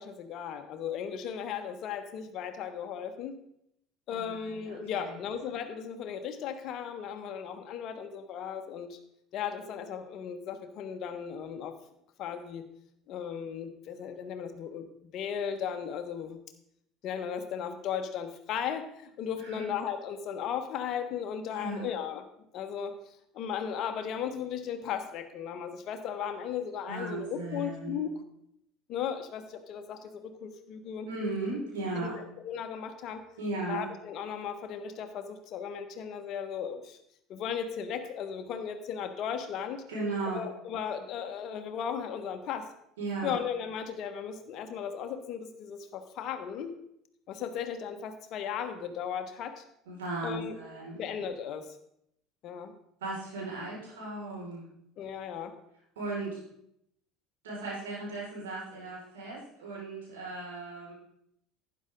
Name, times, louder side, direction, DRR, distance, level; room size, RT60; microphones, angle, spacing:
voice 1, 0.0-3.3 4.1-9.0 9.3-11.7 12.2-12.6 13.1-14.9 15.1-16.4 17.0-22.2 22.5-22.9 23.3-28.1 28.9-31.1 32.0-33.2 33.7-37.0 37.3-39.8 40.3-42.7 43.2-46.8 47.3-49.6 50.2-50.6 50.9-51.8 52.4-52.7 55.0-55.5, left 8 dB, 55° left, 7 dB, 1.4 m, -36 dB
voice 2, 4.1-5.2 19.4-19.7 21.5-21.9 26.9-28.1 31.0-32.2 33.4-33.9 39.9-40.5 43.0-43.4 49.9-51.0 53.0-54.7 56.0-56.4 57.4-60.9, right 2 dB, 80° right, -5 dB, 5.5 m, -36 dB
12.0 x 9.7 x 3.9 m, 0.75 s
hypercardioid pair, 70°, 0 cm